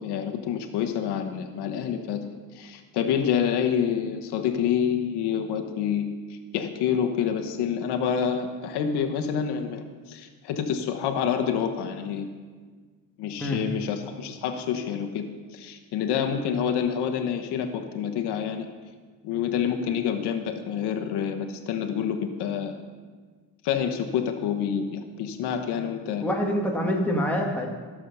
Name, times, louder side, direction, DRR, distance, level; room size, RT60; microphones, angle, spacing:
voice 1, 0.0-2.2 2.5-12.2 13.2-15.3 15.5-18.7 19.2-22.7 23.6-26.2, left 8 dB, 85° left, 5 dB, 1.2 m, -27 dB
voice 2, 26.2-27.7, equal, 5° left, -1 dB, 1.8 m, -25 dB
14.0 x 7.4 x 5.5 m, 1.5 s
cardioid pair, 125°, 39 cm